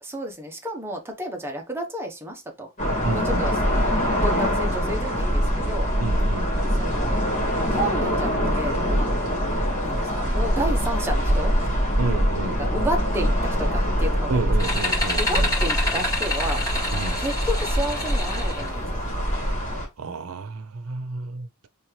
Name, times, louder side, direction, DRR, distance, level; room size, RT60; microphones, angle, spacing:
voice 1, 0.0-2.7 3.1-3.6 4.1-5.9 6.8-7.2 7.7-9.2 9.8-11.5 12.4-14.8 15.2-16.6 17.2-19.1, equal, 10° right, 1.0 m, -32 dB
sound 1, 2.8-19.9, equal, 35° left, 2.6 m, -24 dB
voice 2, 3.0-3.5 6.0-6.5 12.0-12.6 14.3-15.5 16.9-17.2 19.4-19.6 20.0-21.7, right 3 dB, 80° right, 0.7 m, -31 dB
sound 2, 14.6-18.7, left 1 dB, 15° left, 2.6 m, -28 dB
4.1 x 3.4 x 3.2 m
head